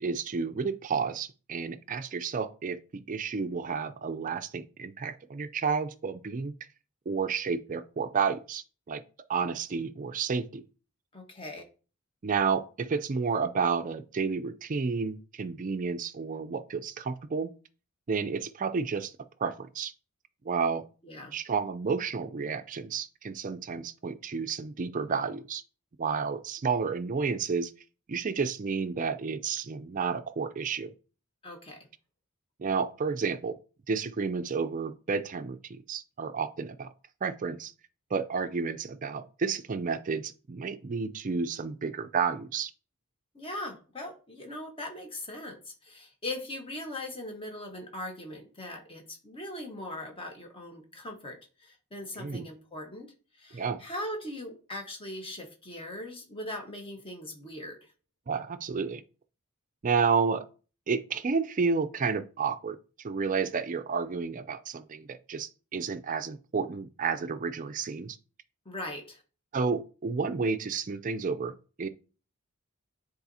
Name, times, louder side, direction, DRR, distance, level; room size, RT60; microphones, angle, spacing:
voice 1, 0.0-6.5 7.1-9.0 9.3-10.6 12.2-17.5 18.1-19.1 19.4-19.9 20.5-20.8 21.3-25.6 26.0-27.7 28.1-30.9 32.6-33.5 33.9-36.9 37.2-37.7 38.1-42.7 52.2-52.5 53.5-53.8 58.3-59.0 59.8-60.4 60.9-62.8 63.0-68.2 69.5-71.9, right 5 dB, 35° right, 0.4 m, -31 dB
voice 2, 11.1-11.6 21.0-21.3 31.4-31.8 43.3-53.1 53.4-57.8 68.6-69.2, left 1 dB, 25° left, 1.2 m, -40 dB
9.6 x 4.1 x 2.7 m
head